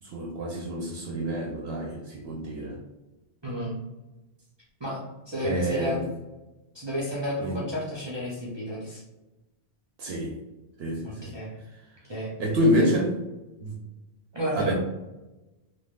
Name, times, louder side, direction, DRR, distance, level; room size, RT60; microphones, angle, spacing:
voice 1, 0.0-2.8 5.4-6.1 7.4-7.6 10.0-10.4 10.8-11.3 12.4-13.2 13.6-13.8 14.5-14.7, equal, 70° right, -1 dB, 0.8 m, -27 dB
voice 2, 3.4-3.8 4.8-6.0 6.7-9.0 11.0-11.5 12.1-12.3 14.3-14.7, equal, 30° right, -6 dB, 0.6 m, -32 dB
3.4 x 2.3 x 2.3 m, 1.0 s
omnidirectional pair, 1.1 m